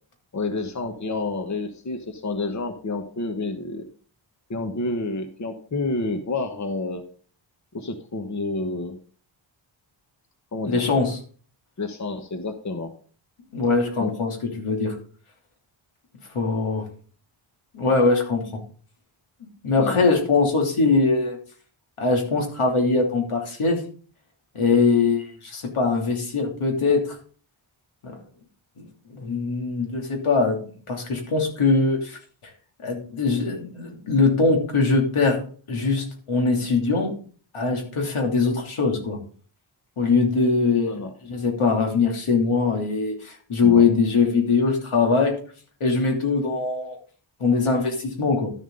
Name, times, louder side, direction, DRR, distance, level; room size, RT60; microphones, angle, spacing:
voice 1, 0.3-3.9 4.5-7.0 7.7-9.0 10.5-10.8 11.8-12.9 14.0-14.1 19.8-20.1 40.9-41.1 43.6-43.9, left 3 dB, 35° left, 6 dB, 1.2 m, -29 dB
voice 2, 10.7-11.2 13.5-14.3 14.6-15.0 16.3-16.8 17.7-18.4 19.6-21.4 22.0-23.8 24.5-27.1 28.0-28.1 28.8-30.6 30.9-32.2 32.8-35.4 35.7-37.1 37.5-39.2 40.0-40.9 41.3-45.3 45.8-47.0 47.4-48.5, left 4 dB, 85° left, 1 dB, 3.1 m, -22 dB
12.0 x 7.3 x 3.9 m, 0.42 s
wide cardioid pair, 130°, 48 cm